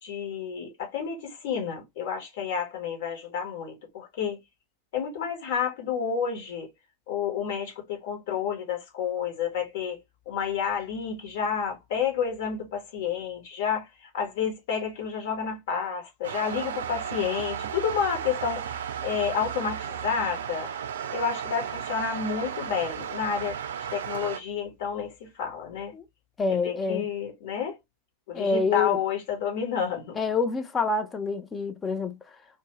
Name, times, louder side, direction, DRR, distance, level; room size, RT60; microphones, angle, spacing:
voice 1, 0.0-4.4 4.9-6.7 7.1-10.0 10.3-18.7 19.0-20.7 21.1-23.6 23.9-25.9 26.5-27.8 28.3-30.2, left 7 dB, 50° left, 1.1 m, -30 dB
sound 1, 16.2-24.4, right 8 dB, 60° right, 0.4 m, -34 dB
voice 2, 26.4-27.1 28.3-29.0 30.2-32.2, left 4 dB, 20° left, 0.5 m, -27 dB
2.6 x 2.2 x 2.9 m
figure-of-eight pair, 90°, 0 cm